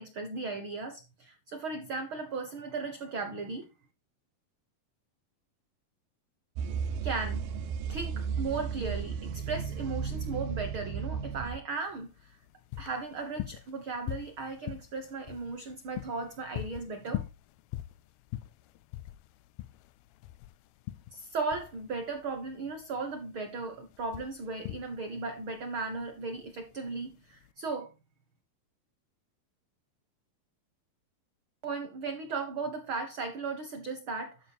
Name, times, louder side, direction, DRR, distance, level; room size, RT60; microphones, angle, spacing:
voice 1, 0.0-3.7 7.0-7.4 7.9-12.3 12.8-17.3 21.1-27.9 31.6-34.4, right 4 dB, 65° right, 1.3 m, -36 dB
sound 1, 6.6-11.6, right 6 dB, 80° right, 2.7 m, -34 dB
sound 2, 11.9-27.5, left 15 dB, 85° left, 2.5 m, -43 dB
12.0 x 5.2 x 4.2 m
omnidirectional pair, 4.2 m